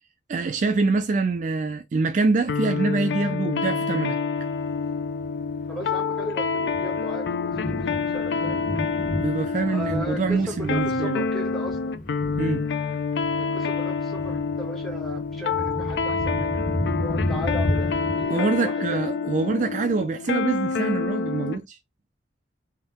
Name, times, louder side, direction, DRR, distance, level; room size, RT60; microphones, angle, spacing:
voice 1, 0.3-4.2 9.2-11.3 12.4-12.6 18.3-21.8, right 3 dB, 45° right, 0.3 m, -25 dB
sound 1, 2.5-21.6, left 5 dB, 70° left, 0.4 m, -27 dB
Thunder, 4.6-18.2, left 1 dB, 45° left, 0.9 m, -32 dB
voice 2, 5.7-8.6 9.6-11.9 13.4-19.5, equal, ahead, 1.4 m, -37 dB
3.6 x 2.7 x 4.1 m
head